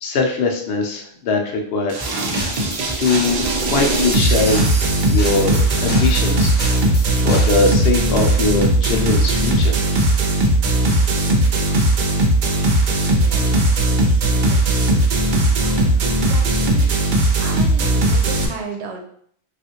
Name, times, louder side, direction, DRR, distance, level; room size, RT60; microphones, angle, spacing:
voice 1, 0.0-2.0 2.3-2.7 3.0-3.4 3.7-4.6 5.1-6.5 6.9-9.8 17.3-17.7, left 3 dB, 70° left, 3 dB, 0.8 m, -21 dB
sound 1, 1.9-18.5, right 1 dB, 55° right, 0.6 m, -18 dB
sound 2, 2.0-7.6, equal, 10° left, 0.5 m, -32 dB
voice 2, 13.2-15.0 15.6-16.9 17.4-19.0, right 4 dB, 80° right, 3 dB, 0.9 m, -35 dB
3.4 x 2.4 x 2.8 m, 0.62 s
omnidirectional pair, 1.1 m